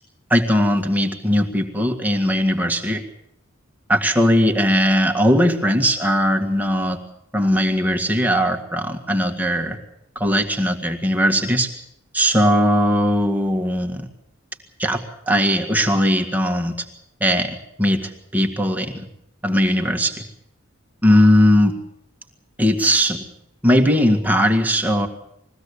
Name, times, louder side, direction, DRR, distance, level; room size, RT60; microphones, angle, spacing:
voice 1, 0.3-3.0 3.9-7.0 7.3-9.8 10.2-11.7 12.1-14.1 14.8-15.0 15.3-16.9 17.2-19.1 19.4-20.1 21.0-21.7 22.6-23.2 23.6-25.1, equal, 10° right, 3 dB, 1.9 m, -19 dB
21.5 x 16.0 x 8.3 m, 0.78 s
head